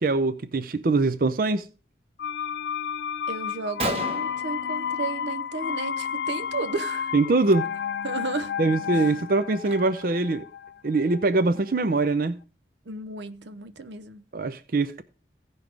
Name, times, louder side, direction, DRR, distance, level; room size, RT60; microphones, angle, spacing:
voice 1, 0.0-1.7 7.1-7.6 8.6-10.4 10.8-12.4 14.3-15.0, right 3 dB, 55° right, 0.5 m, -23 dB
sound 1, 2.2-11.9 12.2-12.3, left 8 dB, 75° left, 0.3 m, -32 dB
Gunshot gunfire, 3.1-3.2 3.5-3.6 3.8-5.4 5.7-6.1 6.3-6.6 7.4-7.5 8.1-8.2 8.6-10.2, right 2 dB, 35° right, 1.1 m, -35 dB
voice 2, 3.3-7.1 8.0-8.6 8.9-9.1 12.9-14.2, right 3 dB, 90° right, 0.8 m, -34 dB
16.0 x 5.5 x 3.4 m
head